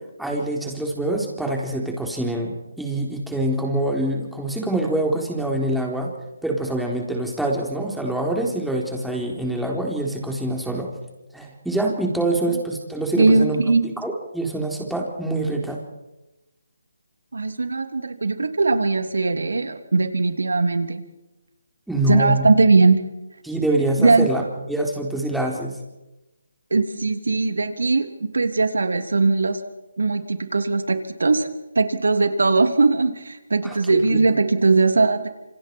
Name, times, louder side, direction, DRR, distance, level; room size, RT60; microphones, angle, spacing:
voice 1, 0.2-6.1 6.4-10.9 11.3-13.6 14.0-15.8 21.9-22.5 23.4-24.4 24.7-25.8 33.6-34.2, right 1 dB, ahead, -1 dB, 3.9 m, -25 dB
voice 2, 13.2-13.9 17.3-21.0 22.1-23.0 24.0-24.3 26.7-29.6 30.0-31.5 31.7-35.3, right 3 dB, 80° right, 7 dB, 3.1 m, -19 dB
28.0 x 27.0 x 4.7 m, 1.0 s
figure-of-eight pair, 155°, 0 cm